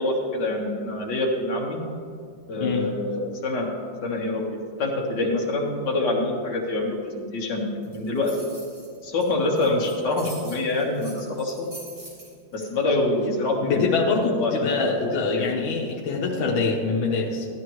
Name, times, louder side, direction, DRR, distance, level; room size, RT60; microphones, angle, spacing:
voice 1, 0.0-1.8 2.5-3.7 4.0-4.5 4.8-8.4 9.0-11.7 12.5-13.8 14.3-14.7 15.0-15.1 15.4-15.5, left 2 dB, 60° left, -1 dB, 2.1 m, -26 dB
sound 1, 7.8-12.7, right 1 dB, 65° right, 4.0 m, -44 dB
voice 2, 13.6-17.5, left 4 dB, 90° left, -1 dB, 1.9 m, -24 dB
14.5 x 12.0 x 3.1 m, 2.2 s
omnidirectional pair, 2.1 m